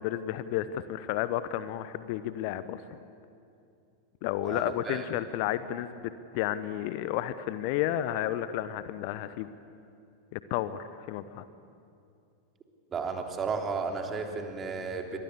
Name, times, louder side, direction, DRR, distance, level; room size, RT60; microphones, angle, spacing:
voice 1, 0.0-2.8 4.2-9.5 10.3-11.4, left 12 dB, 45° left, 14 dB, 1.0 m, -32 dB
voice 2, 4.4-5.0 12.9-15.2, right 4 dB, 20° right, 4 dB, 3.3 m, -33 dB
28.5 x 24.5 x 8.3 m, 2.5 s
figure-of-eight pair, 90°, 0 cm